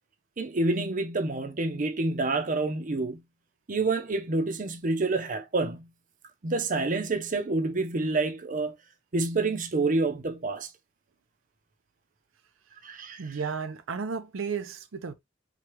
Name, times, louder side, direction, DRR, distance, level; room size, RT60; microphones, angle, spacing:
voice 1, 0.4-3.2 3.7-5.9 6.4-8.7 9.1-10.7 12.8-13.2, right 3 dB, 40° right, 0.6 m, -28 dB
voice 2, 13.2-15.1, right 5 dB, 90° right, 0.5 m, -33 dB
4.7 x 2.3 x 2.9 m
head